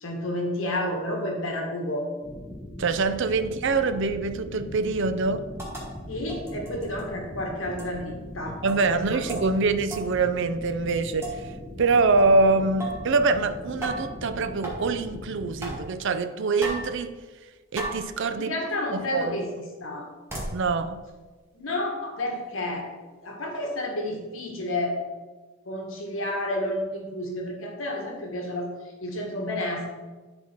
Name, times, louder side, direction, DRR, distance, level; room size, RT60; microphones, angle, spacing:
voice 1, 0.0-2.1 6.1-8.6 8.9-9.4 18.4-20.1 21.5-22.8 23.2-25.0 25.6-28.7 29.0-29.8, left 1 dB, 70° left, 1.4 m, -30 dB
sound 1, 2.2-15.8, left 1 dB, 25° left, 1.0 m, -40 dB
voice 2, 2.8-5.5 8.6-11.5 11.8-17.1 17.7-18.5 18.9-19.4 20.5-21.0, right 3 dB, 65° right, 0.5 m, -24 dB
sound 2, 5.6-5.9 6.3-7.0 7.8-7.9 8.7-8.9 9.3-9.5 9.9-10.1 11.2-11.4 12.2-12.4 12.8-13.1 13.8-14.1 14.6-14.8 15.6-15.8 16.6-16.9 17.8-18.1 18.7-18.8 20.3-20.6, right 1 dB, 15° right, 1.9 m, -35 dB
10.5 x 4.4 x 4.4 m
head